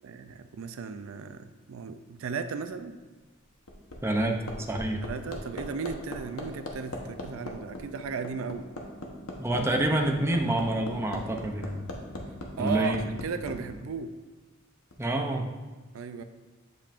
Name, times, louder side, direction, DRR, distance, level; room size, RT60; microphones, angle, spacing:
voice 1, 0.0-3.0 5.0-8.7 12.6-14.1 15.9-16.2, right 5 dB, 70° right, 9 dB, 0.4 m, -35 dB
Hammer, 3.4-13.6 14.9-15.0, left 1 dB, 85° left, 1.0 m, -38 dB
voice 2, 4.0-4.4 4.7-5.0 9.4-11.8 12.6-13.0 15.0-15.5, right 1 dB, 10° right, 2 dB, 0.5 m, -27 dB
8.5 x 5.3 x 2.5 m, 1.3 s
head